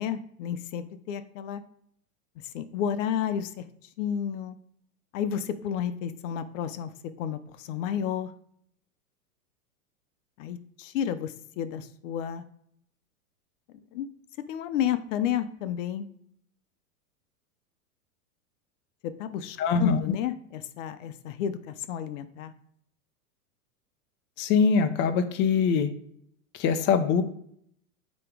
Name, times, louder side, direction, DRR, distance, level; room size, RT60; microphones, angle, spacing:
voice 1, 0.0-1.6 2.5-3.6 4.0-4.6 5.1-6.9 7.2-8.3 10.4-12.4 13.9-14.1 14.5-16.1 19.0-22.5, left 9 dB, 55° left, 12 dB, 0.8 m, -31 dB
voice 2, 19.6-20.0 24.4-25.9 26.5-27.2, left 6 dB, 25° left, 8 dB, 0.6 m, -23 dB
8.4 x 3.0 x 5.0 m, 0.69 s
hypercardioid pair, 120°, 45 cm